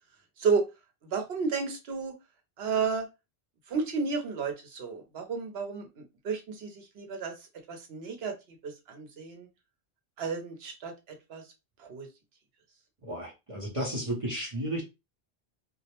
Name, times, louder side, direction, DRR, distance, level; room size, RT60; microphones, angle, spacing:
voice 1, 1.0-2.1 2.6-3.1 3.7-8.3 8.6-9.5 10.2-11.4 11.8-12.1, right 5 dB, 80° right, 1.0 m, -32 dB
voice 2, 13.0-14.8, right 1 dB, 35° right, 0.7 m, -33 dB
2.3 x 2.0 x 2.8 m
omnidirectional pair, 1.0 m